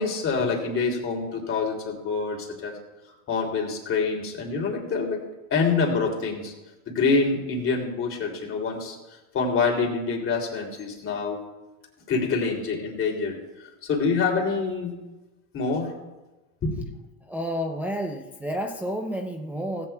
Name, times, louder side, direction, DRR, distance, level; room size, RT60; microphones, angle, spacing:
voice 1, 0.0-2.7 3.3-5.2 5.5-6.5 6.9-9.0 9.3-11.4 12.1-13.4 13.8-14.9 15.5-15.9 16.6-16.8, left 4 dB, 30° left, 1 dB, 3.0 m, -26 dB
voice 2, 17.2-19.9, equal, 5° right, 2 dB, 0.6 m, -30 dB
17.0 x 16.0 x 2.3 m, 1.1 s
supercardioid pair, 125°, 45 cm